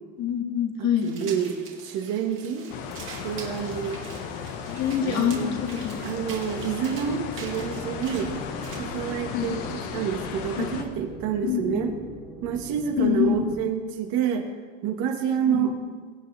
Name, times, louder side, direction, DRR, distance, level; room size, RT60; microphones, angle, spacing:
voice 1, 0.2-1.1 4.7-6.0 9.3-9.5 10.6-10.7 11.5-11.9 13.0-13.5 15.5-15.7, left 9 dB, 45° left, 3 dB, 1.9 m, -25 dB
voice 2, 0.8-1.5 1.8-2.7 3.2-4.0 5.0-5.6 6.0-8.3 8.8-9.6 9.9-11.9 12.4-14.5 14.8-15.7, right 8 dB, 60° right, 3 dB, 2.0 m, -28 dB
sound 1, 1.0-9.1, right 5 dB, 35° right, 2.5 m, -44 dB
sound 2, 2.7-10.8, left 7 dB, 65° left, 1.6 m, -35 dB
sound 3, 7.6-13.6, right 1 dB, 5° left, 2.4 m, -42 dB
23.0 x 8.9 x 3.5 m, 1.5 s
cardioid pair, 145°, 38 cm